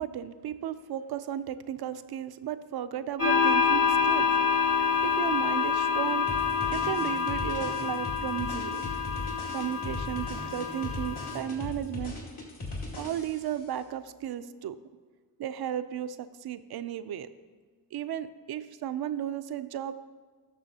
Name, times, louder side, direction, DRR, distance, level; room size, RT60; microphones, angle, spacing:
voice 1, 0.0-4.3 5.0-6.3 6.7-8.8 9.5-12.1 13.0-14.8 15.4-17.3 17.9-19.9, right 10 dB, 60° right, 12 dB, 0.5 m, -34 dB
sound 1, 3.2-11.4, left 6 dB, 45° left, 2.0 m, -27 dB
sound 2, 6.3-13.6, left 2 dB, 65° left, 2.3 m, -38 dB
12.0 x 6.2 x 2.8 m, 1.5 s
cardioid pair, 50°, 43 cm